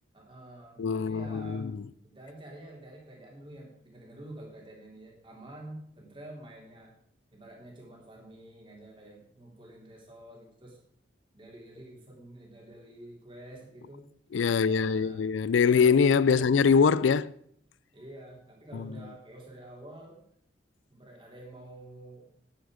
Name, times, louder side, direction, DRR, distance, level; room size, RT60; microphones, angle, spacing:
voice 1, 0.1-1.7 2.0-6.9 7.3-10.8 11.3-14.1 14.5-15.2 15.5-15.8 16.3-16.5 17.9-20.2 20.9-22.3, right 1 dB, 25° right, 3.3 m, -48 dB
voice 2, 0.8-1.8 14.3-17.3 18.7-18.9, left 6 dB, 85° left, 0.4 m, -23 dB
10.0 x 10.0 x 5.0 m
head